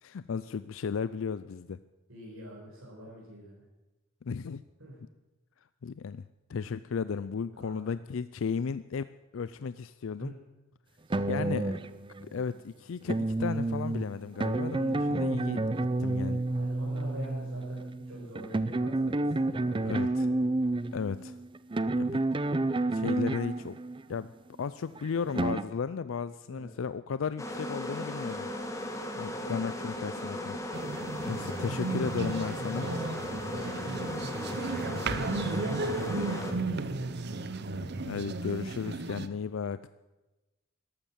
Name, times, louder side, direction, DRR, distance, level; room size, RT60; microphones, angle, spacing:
voice 1, 0.0-1.8 4.2-4.6 5.8-6.2 6.5-9.1 9.3-10.3 11.3-11.7 12.2-16.4 19.8-20.3 20.9-21.4 21.9-22.2 22.9-23.8 24.1-24.3 24.6-28.5 29.2-30.6 31.3-32.9 35.1-35.4 38.0-39.9, left 6 dB, 65° left, 14 dB, 0.4 m, -34 dB
voice 2, 2.1-3.6 4.8-4.9 7.5-7.8 10.2-10.3 11.1-11.7 16.5-20.3 26.5-26.7 29.2-29.6 32.5-34.3 34.6-35.0 35.4-38.2, right 1 dB, 70° right, -6 dB, 5.1 m, -44 dB
sound 1, 11.1-12.4 13.1-24.2 25.0-25.6, right 2 dB, 25° right, 0.5 m, -30 dB
sound 2, 27.4-36.5, left 1 dB, 15° left, 1.7 m, -37 dB
sound 3, 30.7-39.3, right 3 dB, 55° right, 0.8 m, -34 dB
13.5 x 12.5 x 7.4 m, 1.1 s
head